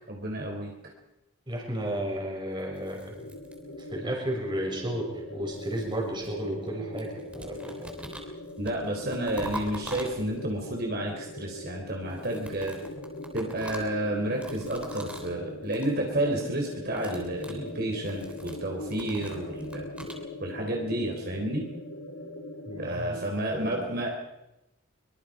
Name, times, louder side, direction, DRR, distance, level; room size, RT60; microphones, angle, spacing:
voice 1, 0.1-0.7 8.6-12.8 13.3-19.9 20.4-21.7 22.8-24.1, right 1 dB, 50° right, 1 dB, 3.9 m, -31 dB
voice 2, 1.5-3.2 3.9-7.9 20.0-20.1 22.7-23.2 23.5-23.8, right 1 dB, 20° right, 0 dB, 6.1 m, -33 dB
sound 1, 2.6-4.2 5.1-6.7 7.0-10.6 12.0-15.4 15.6-16.0 16.2-16.5 16.8-20.2, right 1 dB, 5° right, 3.4 m, -44 dB
sound 2, 3.1-22.9, left 1 dB, 85° left, 3.1 m, -41 dB
25.5 x 24.0 x 5.0 m, 0.89 s
head